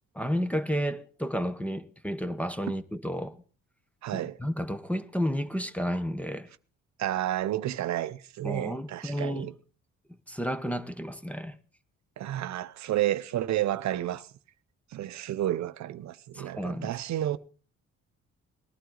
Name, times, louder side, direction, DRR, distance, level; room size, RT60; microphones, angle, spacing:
voice 1, 0.1-3.4 4.1-6.5 8.4-9.5 10.3-11.6 16.3-16.9, equal, 5° left, 0.9 m, -31 dB
voice 2, 4.0-4.4 7.0-9.5 12.2-14.3 14.9-17.4, right 13 dB, 65° right, 0.7 m, -31 dB
19.5 x 11.5 x 3.8 m
cardioid pair, 90°, 30 cm